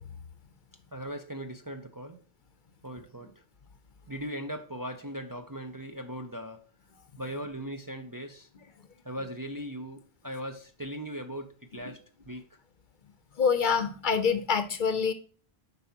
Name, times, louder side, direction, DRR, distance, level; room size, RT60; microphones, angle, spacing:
voice 1, 0.9-2.2 2.8-3.4 4.1-6.7 7.2-8.5 9.0-12.4, equal, 25° right, 0.6 m, -39 dB
voice 2, 13.4-15.1, left 6 dB, 55° left, 0.8 m, -26 dB
9.4 x 5.5 x 2.8 m
omnidirectional pair, 1.1 m